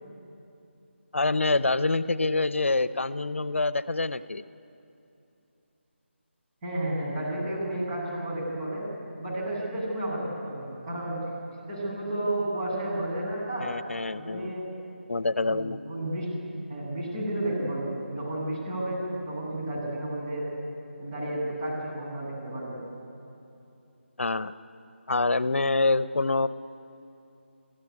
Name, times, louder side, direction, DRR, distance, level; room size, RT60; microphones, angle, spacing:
voice 1, 1.1-4.4 13.6-14.5 15.1-15.8 24.2-24.5 25.1-26.5, left 3 dB, 85° left, 15 dB, 0.8 m, -26 dB
voice 2, 6.6-8.8 9.2-11.2 11.7-13.7 14.1-14.7 15.4-20.5 21.0-22.8, right 1 dB, 25° right, -4 dB, 7.8 m, -32 dB
29.5 x 16.0 x 9.7 m, 2.8 s
figure-of-eight pair, 165°, 7 cm